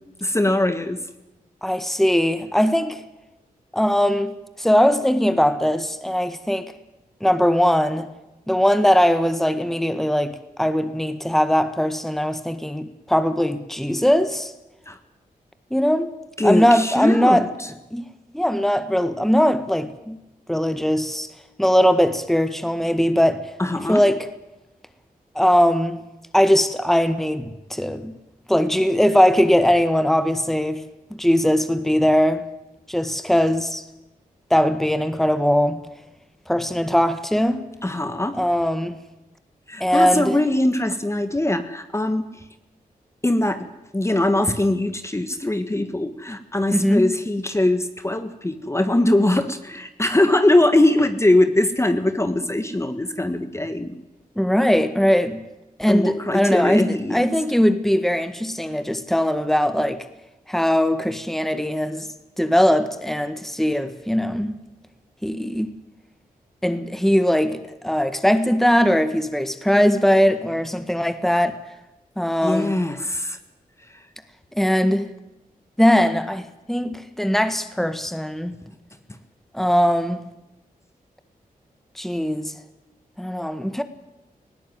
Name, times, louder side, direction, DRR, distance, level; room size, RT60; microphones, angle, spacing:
voice 1, 0.2-1.0 14.9-15.0 16.4-17.7 23.6-24.0 37.8-38.4 39.7-42.2 43.2-43.7 43.9-53.9 55.9-57.3 72.4-73.4 73.9-74.0 78.7-78.8, left 1 dB, 20° left, 1.5 m, -21 dB
voice 2, 1.6-3.0 3.7-6.7 7.2-8.1 8.5-14.5 15.7-16.1 16.4-17.4 17.9-18.0 18.3-20.2 20.5-21.3 21.6-23.4 23.9-24.2 25.3-26.0 26.3-28.1 28.5-30.8 31.1-32.4 32.9-33.8 34.5-35.8 36.5-37.6 38.3-39.0 39.8-40.3 46.7-47.1 54.4-55.4 55.8-60.1 60.5-62.1 62.4-64.5 65.2-65.7 66.6-71.6 72.2-72.8 74.5-75.1 75.8-78.6 79.5-80.2 82.0-82.5 83.2-83.8, equal, ahead, 1.6 m, -20 dB
19.5 x 16.5 x 9.4 m
cardioid pair, 65°, 15 cm